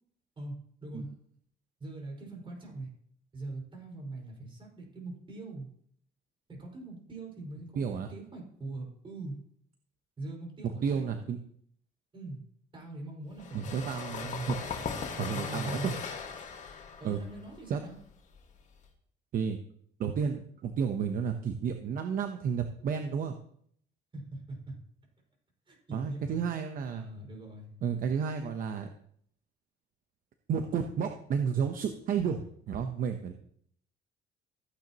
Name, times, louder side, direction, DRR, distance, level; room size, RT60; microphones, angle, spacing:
voice 1, 0.4-1.1 1.8-2.9 3.3-5.7 6.5-9.4 10.2-11.2 12.1-12.4 12.7-13.9 14.2-15.9 17.0-18.0 24.1-24.8 25.7-26.4 26.8-27.7, right 2 dB, 30° right, -1 dB, 5.1 m, -42 dB
voice 2, 7.8-8.1 10.8-11.4 13.5-14.6 15.2-15.9 17.0-17.2 17.7-17.8 19.3-19.6 20.0-23.3 25.9-27.0 27.8-28.9 30.5-33.3, right 6 dB, 55° right, 6 dB, 0.9 m, -31 dB
sound 1, 13.4-18.9, left 6 dB, 45° left, 1.8 m, -39 dB
14.5 x 9.1 x 3.0 m, 0.64 s
cardioid pair, 110°, 17 cm